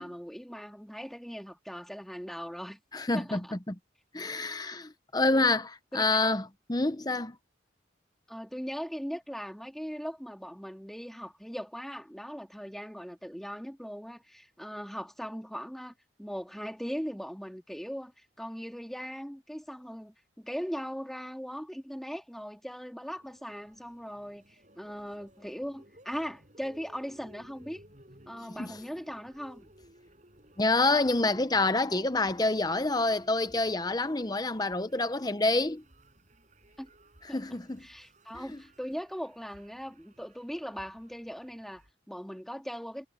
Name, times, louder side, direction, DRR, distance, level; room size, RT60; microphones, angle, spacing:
voice 1, 0.0-2.8 3.1-3.6 4.7-4.8 5.3-5.5 5.9-6.4 6.9-7.1 8.3-27.8 28.3-29.7 36.8-36.9 37.3-37.4 37.8-43.1, equal, ahead, 2.7 m, -39 dB
voice 2, 2.9-3.7 4.1-6.4 6.7-7.3 28.6-28.8 30.6-35.8 37.3-37.8, left 2 dB, 20° left, 0.8 m, -27 dB
sound 1, 23.0-41.9, right 1 dB, 40° right, 5.6 m, -58 dB
head